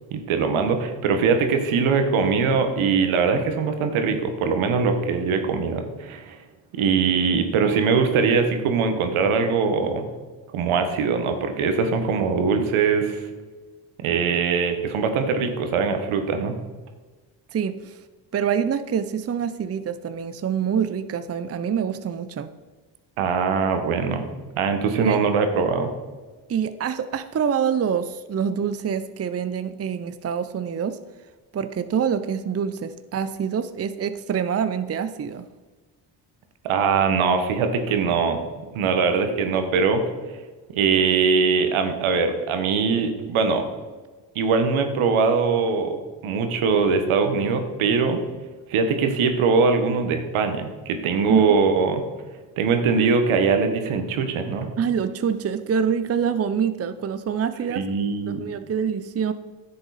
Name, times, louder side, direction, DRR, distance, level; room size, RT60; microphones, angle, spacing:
voice 1, 0.1-6.4 6.7-10.0 10.5-13.3 14.0-16.5 23.2-24.2 24.6-25.9 36.6-38.4 38.7-40.0 40.3-40.4 40.7-43.7 44.3-46.0 46.2-48.2 48.7-52.0 52.6-54.7 57.7-58.4, right 5 dB, 75° right, 7 dB, 1.5 m, -22 dB
voice 2, 17.5-18.0 18.3-22.5 25.0-25.2 26.5-31.0 31.5-35.4 51.3-51.4 54.8-57.9 58.3-59.3, right 7 dB, 30° right, 11 dB, 0.6 m, -25 dB
10.5 x 7.6 x 4.2 m, 1.3 s
supercardioid pair, 60°, 49 cm